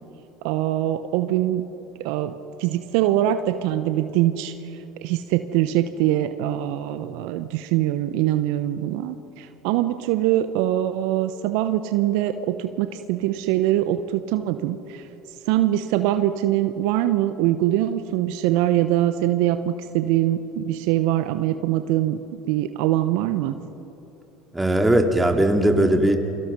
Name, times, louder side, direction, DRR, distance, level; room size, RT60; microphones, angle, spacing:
voice 1, 0.4-1.6 2.0-4.5 5.0-15.1 15.5-22.2 22.5-23.6, right 13 dB, 65° right, 11 dB, 0.9 m, -23 dB
voice 2, 24.5-26.2, right 1 dB, 10° right, 3 dB, 3.0 m, -19 dB
29.5 x 24.0 x 5.4 m, 3.0 s
hypercardioid pair, 75°, 0 cm